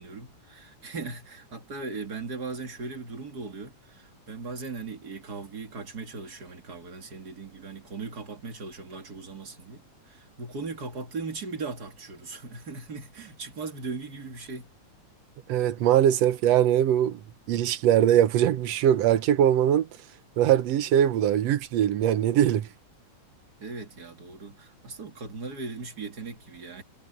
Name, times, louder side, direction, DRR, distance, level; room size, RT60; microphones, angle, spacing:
voice 1, 0.0-14.7 23.6-26.8, right 4 dB, 35° right, 2.5 m, -38 dB
voice 2, 15.5-17.2 17.5-19.9 20.4-22.7, right 11 dB, 65° right, 2.0 m, -21 dB
omnidirectional pair, 3.3 m